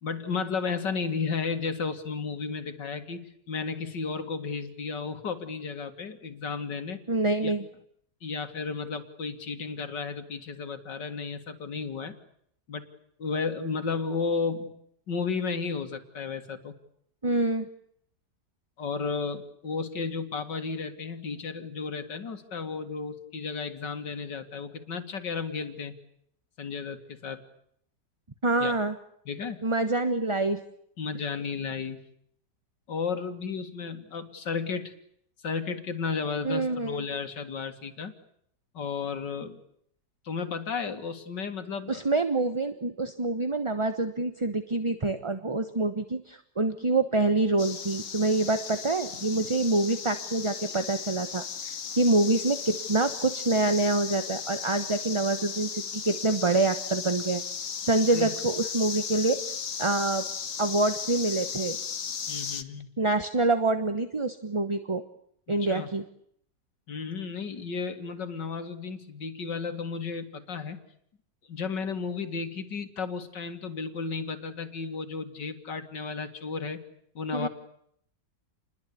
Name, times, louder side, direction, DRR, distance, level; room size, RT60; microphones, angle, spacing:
voice 1, 0.0-7.0 7.4-7.5 8.2-12.2 12.7-12.9 13.2-14.7 15.1-16.7 18.8-25.9 26.6-27.4 28.6-28.8 29.3-29.6 31.0-32.0 32.9-34.9 35.4-38.1 38.7-39.6 40.2-42.1 58.1-58.3 62.3-62.9 65.5-65.9 66.9-70.8 71.5-76.8 77.1-77.5, left 5 dB, 85° left, 7 dB, 2.6 m, -33 dB
voice 2, 7.1-7.6 17.2-17.7 28.4-28.9 29.6-30.6 36.4-37.0 41.9-57.4 57.8-59.4 59.8-60.2 60.6-61.8 63.0-65.0 65.5-66.0 77.3-77.5, right 2 dB, 20° right, 9 dB, 1.0 m, -26 dB
sound 1, 47.6-62.6, left 7 dB, 50° left, 1.5 m, -36 dB
28.5 x 21.5 x 8.5 m, 0.69 s
omnidirectional pair, 1.9 m